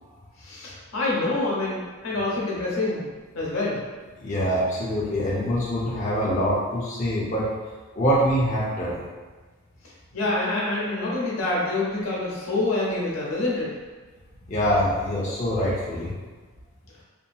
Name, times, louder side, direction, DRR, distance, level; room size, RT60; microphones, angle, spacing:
voice 1, 0.4-3.1 3.3-3.8 10.1-13.8, left 2 dB, 90° left, -5 dB, 0.8 m, -26 dB
voice 2, 4.2-7.5 8.0-9.0 14.5-16.1, equal, 35° left, -6 dB, 0.5 m, -24 dB
2.7 x 2.5 x 2.3 m, 1.3 s
head